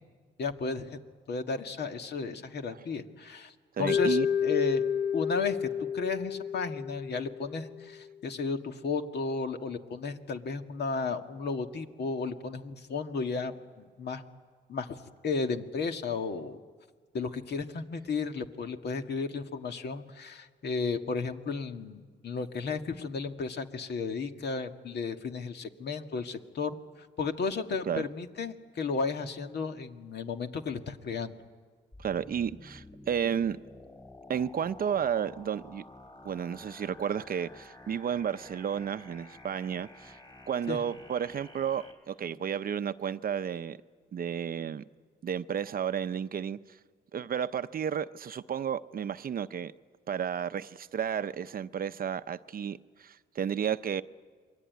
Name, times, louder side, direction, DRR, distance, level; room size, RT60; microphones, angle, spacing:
voice 1, 0.4-1.0 1.3-3.5 3.8-4.8 5.1-14.2 14.7-15.0 15.2-16.6 17.1-26.8 27.2-31.4 40.7-40.8, left 4 dB, 55° left, 1.9 m, -34 dB
voice 2, 3.8-4.3 27.8-28.1 32.0-33.6 34.3-35.8 36.2-40.2 40.5-43.8 44.1-44.8 45.2-46.6 47.1-49.7 50.1-54.0, right 8 dB, 45° right, 0.7 m, -32 dB
Mallet percussion, 3.9-8.0, left 8 dB, 80° left, 0.9 m, -30 dB
sound 1, 31.9-41.9, left 2 dB, 20° left, 5.6 m, -51 dB
28.0 x 22.5 x 9.4 m
cardioid pair, 90°, 20 cm